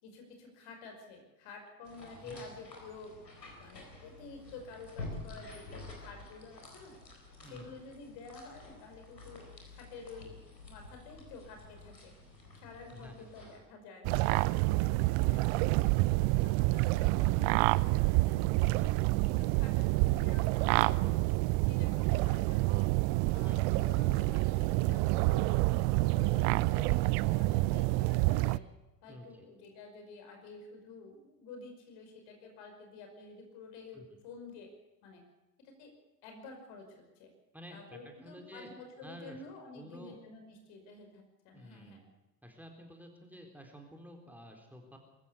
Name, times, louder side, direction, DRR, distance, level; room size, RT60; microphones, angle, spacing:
voice 1, 0.0-3.2 3.6-7.0 7.5-12.1 12.6-18.6 19.2-21.2 21.6-22.9 23.3-28.7 29.0-34.7 35.0-35.2 35.8-35.9 36.2-37.3 37.7-42.0, left 3 dB, 55° left, 4 dB, 5.4 m, -50 dB
sound 1, 1.8-13.6, left 2 dB, 85° left, 4.4 m, -49 dB
voice 2, 2.2-2.5 7.4-7.7 12.9-13.3 18.6-18.9 23.4-23.7 29.1-29.5 33.9-34.1 37.5-38.7 39.0-39.4 39.7-40.2 41.5-42.0 42.4-45.0, equal, 5° right, 2 dB, 4.0 m, -51 dB
sound 2, 14.0-28.6, right 21 dB, 50° right, 0.6 m, -28 dB
22.5 x 14.5 x 8.3 m, 1.0 s
figure-of-eight pair, 65°, 49 cm